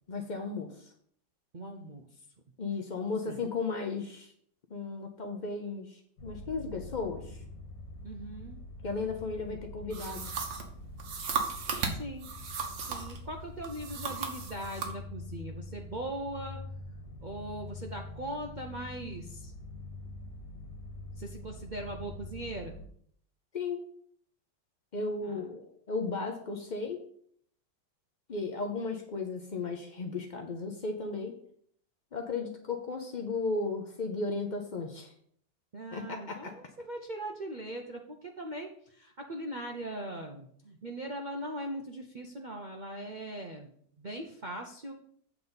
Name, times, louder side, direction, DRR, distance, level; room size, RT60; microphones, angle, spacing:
voice 1, 0.1-0.9 2.6-4.3 4.7-7.4 8.8-10.3 23.5-23.8 24.9-27.0 28.3-31.3 32.1-35.1 35.9-36.5, left 3 dB, 65° left, 4 dB, 0.4 m, -35 dB
voice 2, 1.5-2.2 3.3-3.5 8.0-8.6 11.9-12.3 12.8-16.6 16.9-19.5 21.2-22.8 25.2-25.5 35.7-43.7 44.0-44.9, right 1 dB, 65° right, 2 dB, 0.4 m, -40 dB
sound 1, 6.2-22.9, left 2 dB, 85° left, 1.9 m, -45 dB
sound 2, 9.9-13.2 13.6-14.9, right 5 dB, 85° right, 1.9 m, -36 dB
8.2 x 4.0 x 7.0 m, 0.62 s
omnidirectional pair, 1.9 m